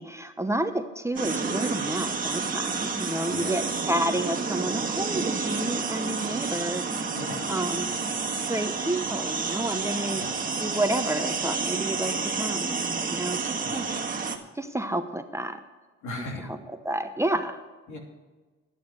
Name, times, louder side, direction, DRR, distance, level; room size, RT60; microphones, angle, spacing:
voice 1, 0.0-6.9 7.5-7.9 8.5-10.2 10.6-13.8 14.6-15.6 16.4-16.6 16.8-17.6, right 1 dB, 10° right, 7 dB, 0.8 m, -30 dB
sound 1, 1.2-14.4, right 4 dB, 30° right, 1.6 m, -30 dB
voice 2, 3.3-3.6 7.1-7.5 10.1-10.4 13.6-13.9 16.0-16.5 17.9-18.0, left 2 dB, 75° left, 1 dB, 3.1 m, -38 dB
11.0 x 9.6 x 6.4 m, 1.3 s
cardioid pair, 90°, 30 cm